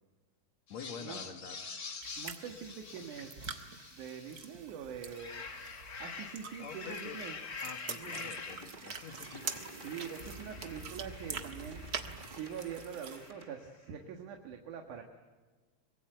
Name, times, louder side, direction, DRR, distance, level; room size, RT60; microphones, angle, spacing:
voice 1, 0.7-1.6 6.6-7.2 7.6-9.6, left 6 dB, 65° left, 5 dB, 2.7 m, -47 dB
sound 1, 0.7-4.6 5.0-13.7, left 5 dB, 35° left, 1.9 m, -47 dB
sound 2, 2.0-13.3, right 6 dB, 45° right, 1.5 m, -46 dB
voice 2, 2.2-3.5 3.9-5.4 6.0-7.4 7.9-8.3 9.8-11.8 12.3-15.0, right 7 dB, 90° right, 4 dB, 3.1 m, -44 dB
sound 3, 8.0-13.5, right 2 dB, 25° right, 1.1 m, -50 dB
24.5 x 21.5 x 9.1 m, 1.4 s
omnidirectional pair, 3.4 m